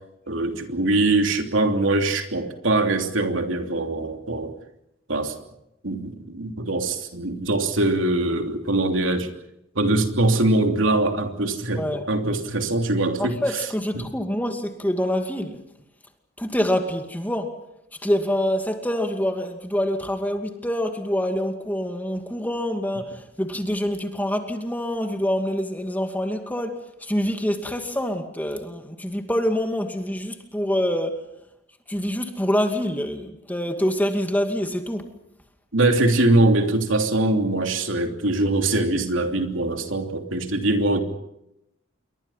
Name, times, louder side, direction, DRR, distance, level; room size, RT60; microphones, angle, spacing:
voice 1, 0.3-4.5 5.1-5.3 5.8-9.3 9.7-13.4 13.9-14.0 35.7-41.0, right 2 dB, 85° right, 4 dB, 3.1 m, -22 dB
voice 2, 11.7-12.1 13.2-15.6 16.4-17.6 18.0-31.2 31.9-35.1 40.9-41.0, equal, 10° left, 5 dB, 2.4 m, -26 dB
28.0 x 24.0 x 5.7 m, 0.84 s
head